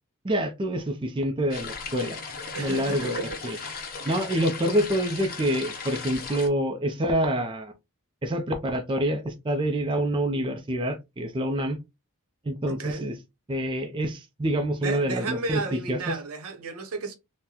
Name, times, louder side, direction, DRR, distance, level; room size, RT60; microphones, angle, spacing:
voice 1, 0.2-2.2 2.6-3.6 4.0-7.7 8.2-11.8 12.4-13.1 13.5-16.2, equal, 20° right, 0.4 m, -27 dB
sound 1, 1.5-6.5, left 5 dB, 40° left, 0.7 m, -37 dB
voice 2, 2.5-3.7 12.7-13.1 14.8-17.1, right 3 dB, 75° right, 0.7 m, -33 dB
3.7 x 2.1 x 2.8 m
head